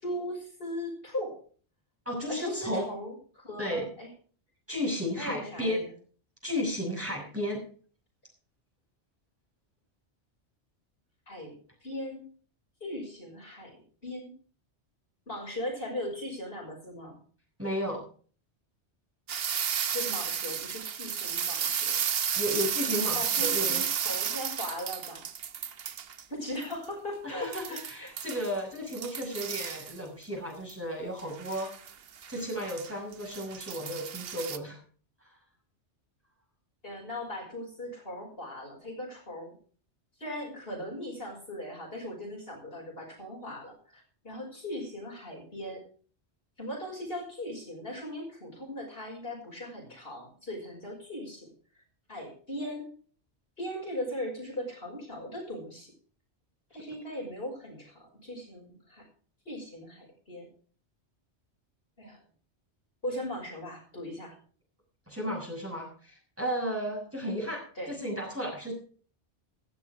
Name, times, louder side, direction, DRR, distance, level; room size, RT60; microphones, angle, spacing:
voice 1, 0.0-1.4 2.3-4.1 5.2-5.8 11.3-11.5 11.8-12.2 12.8-13.8 14.0-14.3 15.3-17.2 19.9-22.0 23.1-25.2 26.3-28.1 36.8-39.5 40.2-45.8 46.6-51.5 52.1-52.9 53.6-55.9 56.7-59.0 59.4-60.5 62.0-62.2 63.0-64.4 67.8-67.9, left 1 dB, 55° left, -1 dB, 6.3 m, -38 dB
voice 2, 2.1-2.9 3.6-3.9 4.7-5.8 6.4-7.6 17.6-18.0 22.3-23.9 27.2-31.9 32.3-34.8 65.1-68.7, equal, 10° right, -1 dB, 5.9 m, -33 dB
sound 1, 19.3-26.2 26.6-26.7 27.4-28.5 28.9-30.0 30.7-30.8 31.2-34.6, right 8 dB, 60° right, 1.1 m, -32 dB
16.0 x 13.0 x 3.6 m, 0.43 s
omnidirectional pair, 1.2 m